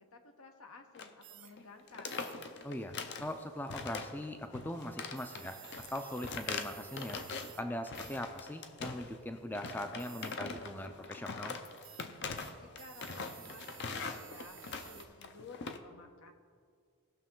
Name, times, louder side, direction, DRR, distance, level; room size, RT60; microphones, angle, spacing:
voice 1, 0.0-2.3 12.5-14.6 14.8-16.3, left 3 dB, 75° left, 5 dB, 1.1 m, -54 dB
sound 1, 0.9-1.2 1.5-1.6 1.9-3.3 3.7-4.3 4.5-7.6 7.9-9.2 9.5-15.8, left 4 dB, 50° left, 0.6 m, -42 dB
sound 2, 1.2-15.1, right 13 dB, 60° right, 0.6 m, -56 dB
voice 2, 2.6-2.9 3.2-5.6 5.9-7.2 7.6-11.6, left 1 dB, 10° left, 6 dB, 0.4 m, -40 dB
18.5 x 6.3 x 3.8 m, 2.1 s
head